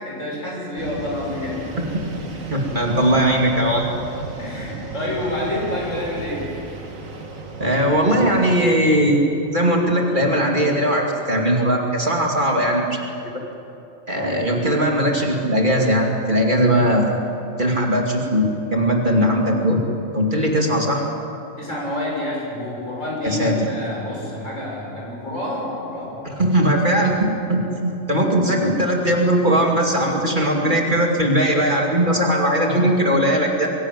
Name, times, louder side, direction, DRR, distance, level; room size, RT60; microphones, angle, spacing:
voice 1, 0.0-1.6 4.4-6.5 21.6-26.9, left 1 dB, 70° left, -4 dB, 7.3 m, -28 dB
sound 1, 0.8-8.5, right 3 dB, 85° right, 2.3 m, -34 dB
voice 2, 2.5-3.9 7.6-13.0 14.1-17.2 17.6-19.8 20.1-21.0 23.2-23.7 26.2-33.7, equal, 35° right, 0 dB, 2.6 m, -19 dB
22.5 x 17.0 x 9.3 m, 2.9 s
omnidirectional pair, 1.4 m